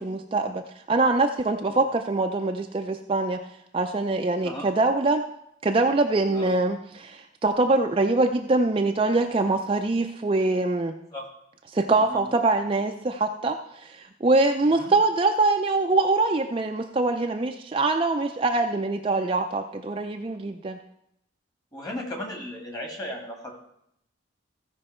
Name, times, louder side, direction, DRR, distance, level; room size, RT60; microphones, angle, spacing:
voice 1, 0.0-3.4 3.7-5.2 5.6-10.9 11.7-20.8, right 2 dB, 25° right, 5 dB, 0.4 m, -24 dB
voice 2, 21.7-23.6, left 1 dB, 20° left, 1 dB, 1.7 m, -36 dB
15.5 x 5.3 x 4.3 m, 0.77 s
head